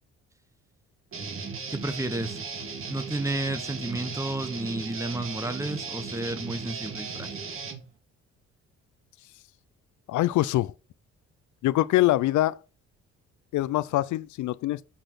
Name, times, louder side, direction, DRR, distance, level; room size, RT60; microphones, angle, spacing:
Guitar, 1.1-7.8, right 5 dB, 45° right, 2.1 m, -36 dB
voice 1, 1.7-2.4 2.9-7.3, right 1 dB, 10° right, 1.1 m, -32 dB
voice 2, 10.1-10.7 11.6-12.6 13.5-14.8, left 16 dB, 75° left, 0.5 m, -24 dB
7.8 x 4.1 x 6.2 m
cardioid pair, 90°, 30 cm